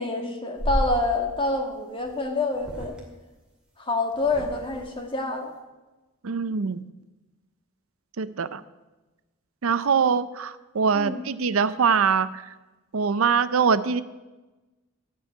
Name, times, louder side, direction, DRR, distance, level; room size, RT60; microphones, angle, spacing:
voice 1, 0.0-2.9 3.8-5.5 10.9-11.2, left 2 dB, 25° left, 3 dB, 1.6 m, -27 dB
sound 1, 0.6-1.0 2.0-2.2 2.5-3.0 4.1-4.8, equal, 5° right, 2.3 m, -31 dB
voice 2, 6.2-6.8 8.2-8.6 9.6-12.5 12.9-14.0, right 6 dB, 70° right, 14 dB, 0.5 m, -23 dB
16.0 x 5.5 x 9.6 m, 1.1 s
head